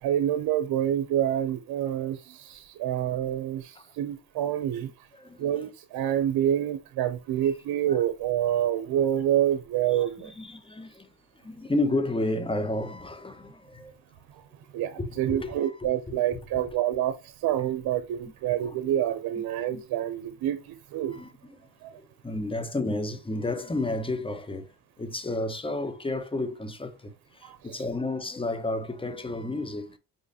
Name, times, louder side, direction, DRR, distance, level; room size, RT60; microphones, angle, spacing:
voice 1, 0.0-4.9 5.4-10.3 14.4-14.5 14.7-21.1 21.8-22.0 27.4-27.8, right 11 dB, 85° right, 0.5 m, -27 dB
voice 2, 5.2-5.6 7.9-8.0 10.4-11.1 11.4-13.9 15.0-15.8 16.1-16.2 18.6-18.7 19.4-19.5 19.7-19.8 21.1-21.6 22.2-24.7 25.0-27.1 27.4-30.0, left 2 dB, 15° left, 0.9 m, -31 dB
5.3 x 3.1 x 2.7 m
cardioid pair, 70°, 36 cm